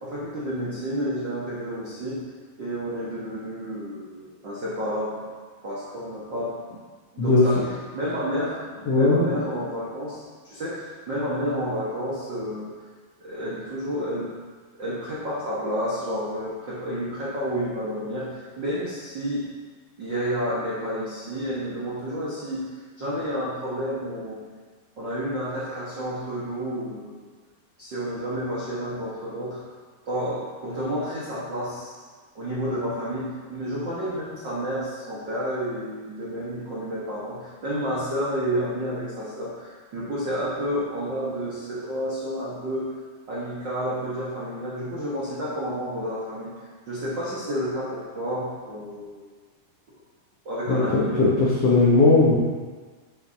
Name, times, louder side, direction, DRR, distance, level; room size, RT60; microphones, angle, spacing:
voice 1, 0.0-2.3 2.6-5.2 5.6-6.5 7.1-12.7 13.2-14.3 14.8-19.5 20.0-24.4 25.0-27.3 27.8-29.6 30.0-31.9 32.3-42.9 43.3-46.5 46.9-49.3 50.4-51.5, equal, 90° right, -8 dB, 1.0 m, -30 dB
voice 2, 8.9-9.3 50.7-52.4, left 3 dB, 80° left, -6 dB, 1.4 m, -18 dB
8.9 x 8.2 x 2.8 m, 1.5 s
omnidirectional pair, 4.5 m